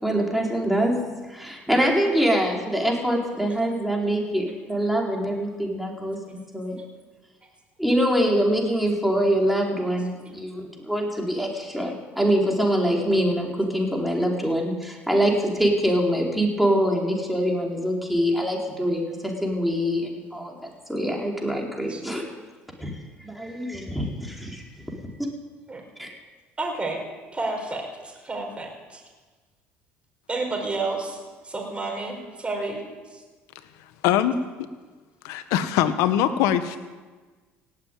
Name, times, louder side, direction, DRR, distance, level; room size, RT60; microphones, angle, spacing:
voice 1, 0.0-1.0 1.3-6.8 7.8-20.5 20.9-22.2 22.8-22.9 23.2-24.6 26.0-26.1, equal, ahead, -1 dB, 4.1 m, -24 dB
voice 2, 26.6-27.0 27.3-29.0 30.3-32.8 33.1-33.2, right 3 dB, 20° right, 1 dB, 4.9 m, -30 dB
voice 3, 34.0-34.4 35.2-36.8, left 11 dB, 75° left, 11 dB, 1.1 m, -22 dB
18.0 x 7.7 x 9.2 m, 1.3 s
supercardioid pair, 85°, 6 cm